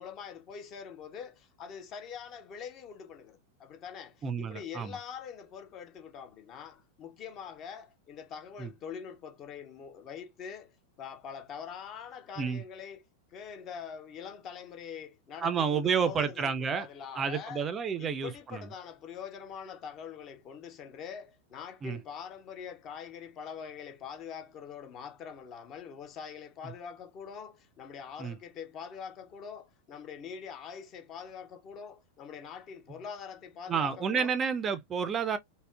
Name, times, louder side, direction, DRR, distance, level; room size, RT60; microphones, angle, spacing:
voice 1, 0.0-17.7 18.0-34.3, left 7 dB, 35° left, 0.5 m, -44 dB
voice 2, 4.2-5.0 8.6-8.7 12.4-12.6 15.4-16.9 17.2-18.6 21.8-22.0 28.2-28.4 33.7-35.4, right 6 dB, 25° right, 0.3 m, -30 dB
3.5 x 2.0 x 2.3 m
figure-of-eight pair, 90°, 0 cm